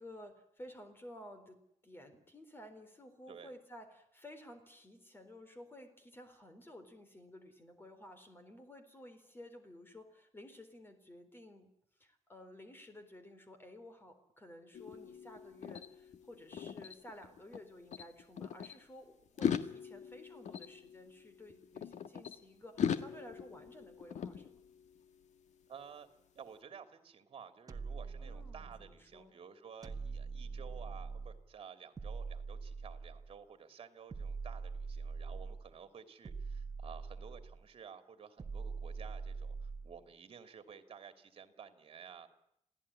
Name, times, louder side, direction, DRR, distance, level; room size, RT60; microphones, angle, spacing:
voice 1, 0.0-11.7 12.0-24.6 28.2-29.3, left 1 dB, 20° left, 8 dB, 3.9 m, -54 dB
sound 1, 14.7-17.6 17.9-18.7 19.3-22.4 22.8-25.0, left 8 dB, 90° left, 1.6 m, -40 dB
voice 2, 25.7-26.1 26.3-42.3, right 7 dB, 50° right, 9 dB, 2.9 m, -53 dB
sound 2, 27.7-29.0 29.8-31.5 32.0-33.4 34.1-35.7 36.2-37.6 38.4-40.0, right 4 dB, 30° right, 1.5 m, -43 dB
28.0 x 17.0 x 10.0 m, 0.78 s
wide cardioid pair, 175°, 12 cm